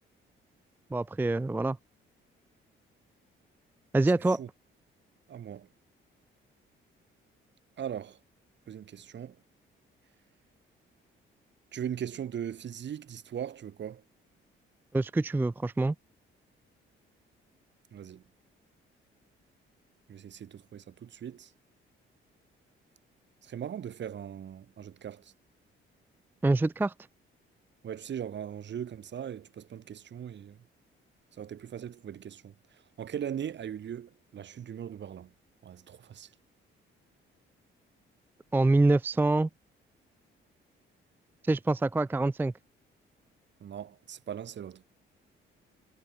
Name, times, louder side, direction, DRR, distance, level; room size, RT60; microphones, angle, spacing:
voice 1, 0.9-1.8 3.9-4.4 14.9-15.9 26.4-26.9 38.5-39.5 41.5-42.5, right 2 dB, 10° right, 0.4 m, -25 dB
voice 2, 5.3-5.7 7.8-8.2 8.7-9.4 11.7-14.0 17.9-18.2 20.1-21.5 23.4-25.3 27.8-30.6 31.4-32.5 33.0-35.3 35.6-36.3 43.6-44.8, right 9 dB, 60° right, 3.8 m, -39 dB
cardioid pair, 105°, 21 cm